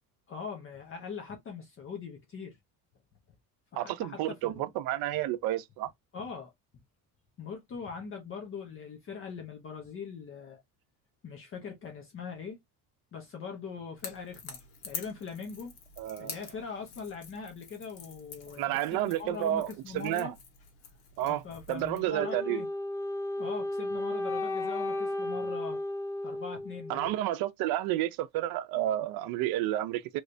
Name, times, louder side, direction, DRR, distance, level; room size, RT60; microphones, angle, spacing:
voice 1, 0.3-2.6 3.7-4.7 6.1-6.5 7.4-10.6 11.2-12.6 13.1-14.6 14.8-15.7 16.2-20.3 21.2-22.7 23.4-25.8 26.2-27.2, left 6 dB, 35° left, 0.9 m, -41 dB
voice 2, 3.8-5.9 16.0-16.4 18.6-20.3 21.2-21.4 21.7-22.6 26.9-30.2, right 13 dB, 70° right, 0.6 m, -31 dB
Crackle / Crack, 14.0-22.1, left 6 dB, 85° left, 1.6 m, -47 dB
Wind instrument woodwind instrument, 22.2-27.2, left 1 dB, 10° left, 0.3 m, -34 dB
3.2 x 3.1 x 2.6 m
cardioid pair, 155°, 37 cm